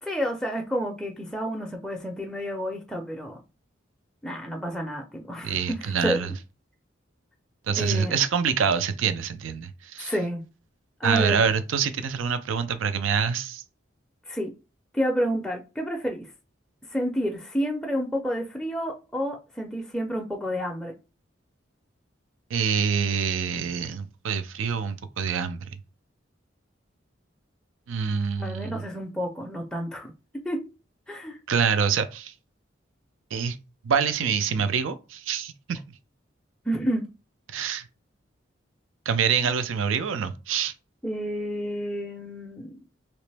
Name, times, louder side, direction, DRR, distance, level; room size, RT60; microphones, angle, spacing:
voice 1, 0.0-3.4 4.2-6.3 7.8-8.1 10.0-10.4 11.0-11.4 14.3-14.5 14.9-16.3 16.9-20.9 28.4-30.7 31.1-31.4 36.7-37.1 41.0-42.8, equal, 5° left, 0.4 m, -30 dB
voice 2, 5.4-6.3 7.7-10.1 11.0-13.6 22.5-25.7 27.9-28.8 31.5-32.3 33.3-33.6 33.8-35.8 37.5-37.9 39.1-40.7, right 6 dB, 85° right, 0.4 m, -26 dB
3.0 x 2.9 x 3.3 m
head